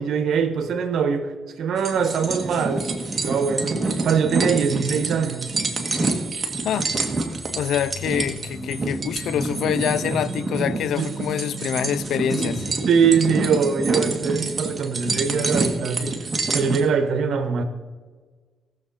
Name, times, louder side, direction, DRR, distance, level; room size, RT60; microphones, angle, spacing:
voice 1, 0.0-2.9 3.2-5.5 11.0-11.1 12.9-16.3 16.5-17.6, right 6 dB, 70° right, 1.3 m, -22 dB
sound 1, 1.8-16.8, right 3 dB, 30° right, 1.7 m, -27 dB
sound 2, 6.9-12.8, right 1 dB, 10° right, 2.1 m, -34 dB
voice 2, 7.6-12.7, left 10 dB, 75° left, 0.4 m, -26 dB
18.0 x 7.0 x 4.2 m
cardioid pair, 90°, 0 cm